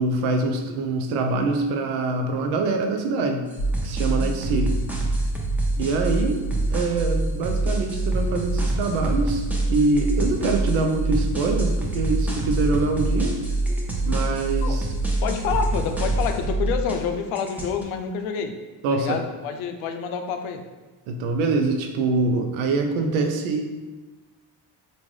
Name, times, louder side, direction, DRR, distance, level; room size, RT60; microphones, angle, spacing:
voice 1, 0.0-3.5 3.8-4.8 5.8-6.4 6.7-13.4 14.1-14.9 18.8-19.2 21.1-23.6, right 3 dB, 85° right, 4 dB, 0.6 m, -24 dB
sound 1, 3.5-17.1 17.3-17.8, right 1 dB, 5° right, 0.7 m, -34 dB
sound 2, 3.6-16.9, right 2 dB, 50° left, 0.8 m, -25 dB
voice 2, 15.2-18.6 18.9-20.6, left 6 dB, 80° left, 6 dB, 0.5 m, -28 dB
3.6 x 2.5 x 3.1 m, 1.2 s
supercardioid pair, 60°, 47 cm